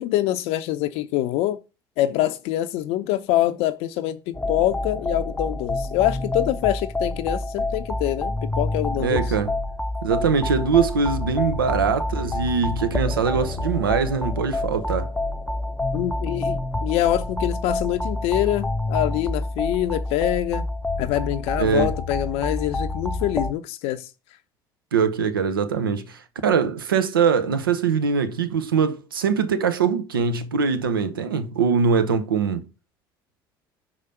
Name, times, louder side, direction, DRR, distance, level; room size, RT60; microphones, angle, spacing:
voice 1, 0.0-1.6 2.0-9.2 15.9-20.7 21.0-24.1, left 14 dB, 65° left, 0.5 m, -25 dB
sound 1, 4.3-23.5, left 2 dB, 10° left, 0.6 m, -28 dB
voice 2, 9.0-9.5 10.0-15.1 21.6-21.9 24.9-32.7, right 6 dB, 85° right, 0.6 m, -22 dB
5.6 x 4.9 x 5.7 m
hypercardioid pair, 60°, 11 cm